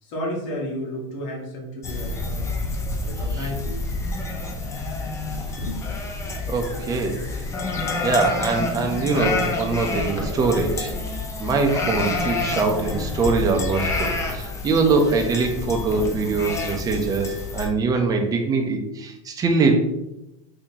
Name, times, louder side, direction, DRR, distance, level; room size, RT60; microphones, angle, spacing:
voice 1, 0.0-2.5 3.0-3.9 5.6-5.8, equal, 75° left, -3 dB, 1.4 m, -32 dB
sound 1, 1.8-17.7, left 3 dB, 20° left, 0.6 m, -28 dB
voice 2, 6.5-7.1 8.0-10.9 11.4-19.9, right 3 dB, 25° right, 4 dB, 0.6 m, -23 dB
3.7 x 2.8 x 2.7 m, 0.91 s
supercardioid pair, 125°, 16 cm